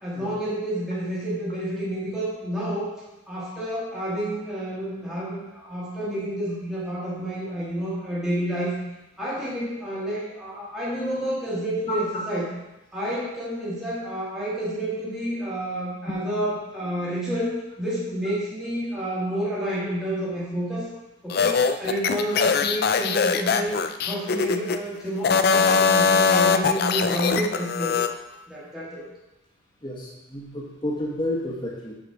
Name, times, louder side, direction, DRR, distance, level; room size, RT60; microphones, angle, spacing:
voice 1, 0.0-2.9 3.3-8.8 9.2-12.5 12.9-17.5 17.8-20.9 21.2-28.0 28.5-29.1, right 1 dB, ahead, -9 dB, 1.7 m, -29 dB
sound 1, 21.3-24.8 25.2-28.1, left 5 dB, 45° left, 0.3 m, -21 dB
voice 2, 29.8-31.9, left 1 dB, 20° left, -3 dB, 1.4 m, -30 dB
7.0 x 5.1 x 5.0 m, 1.0 s
head